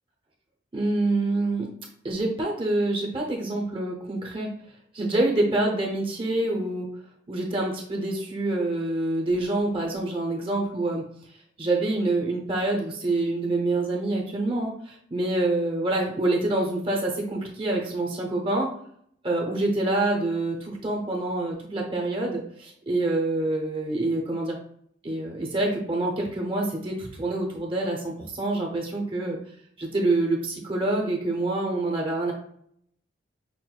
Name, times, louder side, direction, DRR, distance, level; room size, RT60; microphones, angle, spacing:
voice 1, 0.7-1.7 2.0-4.5 4.9-6.9 7.3-11.0 11.6-18.7 19.2-24.6 25.0-29.4 29.8-32.3, right 2 dB, 30° right, 0 dB, 0.7 m, -26 dB
5.9 x 2.5 x 2.3 m, 0.66 s
head